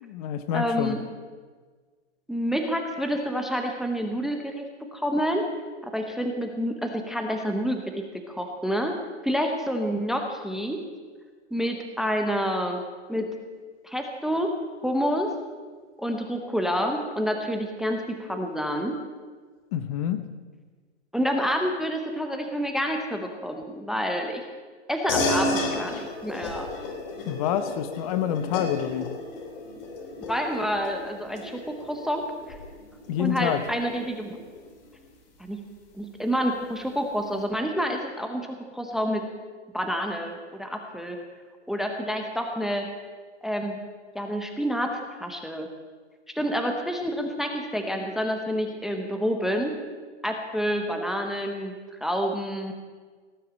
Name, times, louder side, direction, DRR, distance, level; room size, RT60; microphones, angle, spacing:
voice 1, 0.0-1.0 19.7-20.3 27.2-29.1 33.1-33.6, left 10 dB, 30° left, 11 dB, 0.7 m, -27 dB
voice 2, 0.5-1.0 2.3-5.5 5.8-8.9 9.2-10.8 11.5-12.8 13.1-13.3 13.8-14.5 14.8-15.3 16.0-19.0 21.1-24.4 24.9-26.7 30.3-32.6 33.2-34.4 35.4-35.6 35.9-39.3 39.7-41.2 41.7-42.9 43.4-43.8 44.1-45.7 46.3-49.7 50.2-52.7, equal, ahead, 4 dB, 0.7 m, -28 dB
sound 1, 25.1-35.0, left 2 dB, 50° left, 3.1 m, -33 dB
18.0 x 6.6 x 8.6 m, 1.5 s
hypercardioid pair, 145°, 35 cm